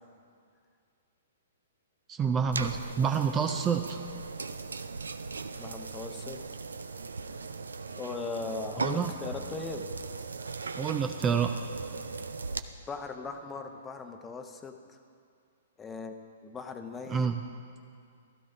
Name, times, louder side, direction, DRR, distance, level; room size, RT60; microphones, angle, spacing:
voice 1, 2.1-4.0 8.8-9.1 10.7-11.6 17.1-17.4, right 6 dB, 20° right, 6 dB, 0.5 m, -28 dB
sound 1, 2.5-12.6, right 4 dB, 80° right, 0.5 m, -38 dB
voice 2, 5.6-6.5 7.9-9.9 12.9-15.0 15.8-16.1 16.4-17.3, left 4 dB, 15° left, 5 dB, 0.8 m, -39 dB
16.0 x 13.0 x 2.7 m, 2.3 s
figure-of-eight pair, 115°, 0 cm